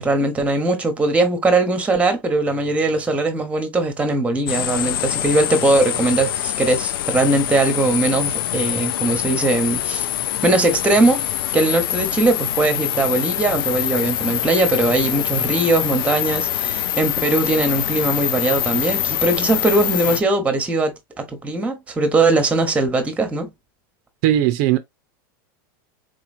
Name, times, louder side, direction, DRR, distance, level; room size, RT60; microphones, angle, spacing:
voice 1, 0.0-10.1 10.4-11.2 11.5-23.5, right 2 dB, 10° right, 0.9 m, -20 dB
sound 1, 4.5-20.2, left 12 dB, 85° left, 0.4 m, -24 dB
voice 2, 24.2-24.8, right 12 dB, 60° right, 0.5 m, -17 dB
3.9 x 3.0 x 2.5 m
supercardioid pair, 125°, 12 cm